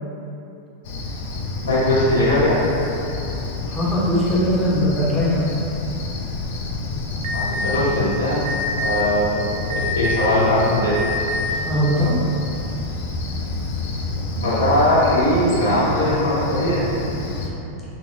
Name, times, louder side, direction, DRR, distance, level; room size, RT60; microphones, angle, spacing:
Cricket, 0.8-17.5, left 2 dB, 55° left, 0.4 m, -29 dB
voice 1, 1.6-2.6 7.3-8.4 8.8-11.0 14.4-16.8, left 1 dB, 70° left, -9 dB, 0.9 m, -20 dB
voice 2, 3.7-5.5 11.6-12.1, equal, 5° left, -9 dB, 0.7 m, -20 dB
Alarm, 7.2-7.8 8.4-9.0 9.7-10.3 10.9-11.5, left 2 dB, 50° right, 0.3 m, -26 dB
2.9 x 2.6 x 3.1 m, 2.9 s
figure-of-eight pair, 90°, 0 cm